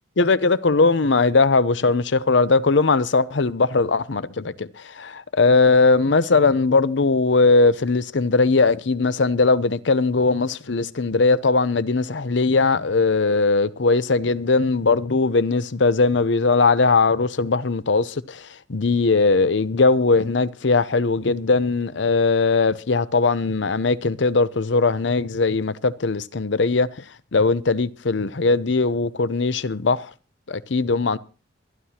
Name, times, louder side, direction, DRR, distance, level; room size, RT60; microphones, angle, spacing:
voice 1, 0.2-27.0 27.3-30.1 30.5-31.2, left 3 dB, 75° left, 0.7 m, -19 dB
24.0 x 11.5 x 2.9 m
head